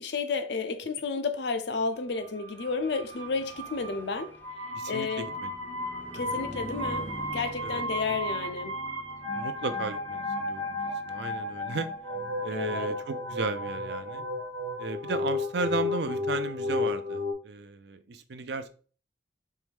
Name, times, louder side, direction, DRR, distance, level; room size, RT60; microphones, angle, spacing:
voice 1, 0.0-4.4 4.9-5.3 6.1-8.8 12.5-13.0, left 4 dB, 60° left, 0.5 m, -32 dB
sound 1, 2.2-17.3, left 2 dB, 80° right, 1.2 m, -34 dB
Car passing by / Truck, 2.4-16.1, left 1 dB, 10° left, 0.5 m, -48 dB
voice 2, 4.7-5.5 6.1-6.4 7.6-7.8 9.3-11.9 12.4-14.2 14.8-18.7, right 3 dB, 60° right, 0.5 m, -35 dB
4.5 x 3.1 x 3.5 m
head